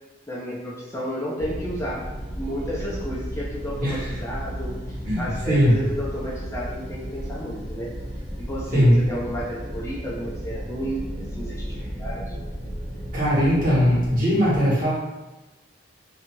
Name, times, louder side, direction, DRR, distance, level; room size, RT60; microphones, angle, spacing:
voice 1, 0.3-2.0 2.4-7.9 8.4-11.0 11.3-12.4, equal, 15° left, -6 dB, 0.4 m, -32 dB
sound 1, 1.4-14.2, equal, 65° right, 0.7 m, -34 dB
voice 2, 5.0-5.7 8.7-9.0 13.1-14.9, equal, 50° right, -9 dB, 1.2 m, -19 dB
2.6 x 2.3 x 3.0 m, 1.1 s
head